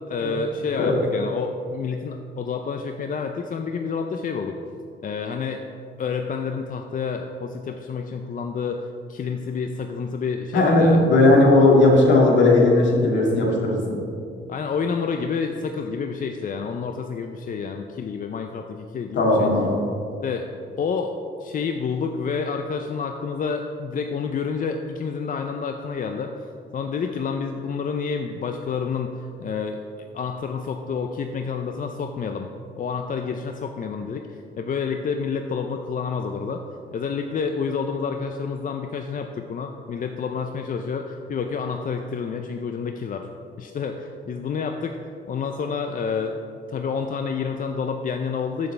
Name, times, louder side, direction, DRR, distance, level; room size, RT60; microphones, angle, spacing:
voice 1, 0.1-4.6 5.0-5.6 6.0-11.0 14.5-19.5 20.2-20.5 20.8-21.1 21.4-29.8 30.1-32.5 32.8-36.6 36.9-43.3 43.6-45.0 45.3-46.4 46.7-48.7, left 5 dB, 45° left, 5 dB, 0.5 m, -29 dB
voice 2, 10.5-14.0 19.2-19.8, left 2 dB, 65° left, -2 dB, 2.2 m, -17 dB
14.0 x 6.4 x 3.3 m, 2.5 s
cardioid pair, 90°, 20 cm